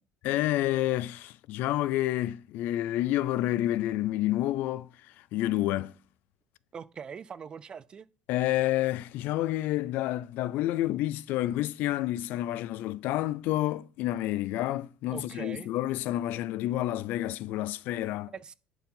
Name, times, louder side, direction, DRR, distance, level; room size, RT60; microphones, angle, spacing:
voice 1, 0.2-6.0 8.3-18.3, left 14 dB, 65° left, 0.4 m, -29 dB
voice 2, 6.7-8.1 15.1-15.7 18.3-18.5, right 6 dB, 25° right, 0.5 m, -42 dB
11.0 x 4.7 x 5.5 m
cardioid pair, 150°, 3 cm